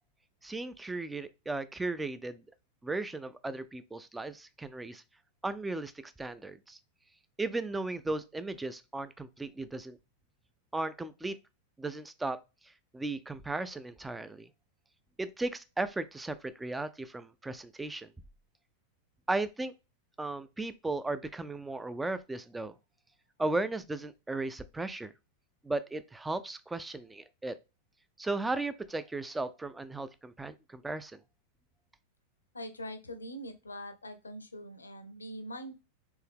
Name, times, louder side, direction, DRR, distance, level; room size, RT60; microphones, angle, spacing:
voice 1, 0.4-2.4 2.8-5.0 5.4-6.8 7.4-10.0 10.7-11.4 11.8-12.4 12.9-14.5 15.2-18.1 19.3-19.7 20.2-22.8 23.4-25.1 25.6-27.5 28.2-31.2, right 2 dB, 10° right, 0.4 m, -36 dB
voice 2, 32.5-35.8, equal, 80° left, 0.7 m, -43 dB
4.5 x 3.4 x 3.5 m
figure-of-eight pair, 90°, 0 cm